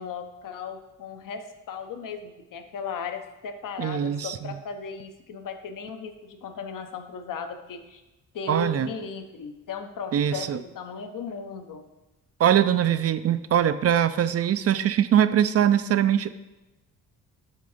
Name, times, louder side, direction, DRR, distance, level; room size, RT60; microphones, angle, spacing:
voice 1, 0.0-8.0 8.3-11.9, left 5 dB, 60° left, 7 dB, 0.9 m, -36 dB
voice 2, 3.8-4.5 8.5-8.9 10.1-10.6 12.4-16.3, right 10 dB, 40° right, 13 dB, 0.5 m, -22 dB
7.7 x 3.4 x 5.0 m, 1.0 s
supercardioid pair, 70°, 36 cm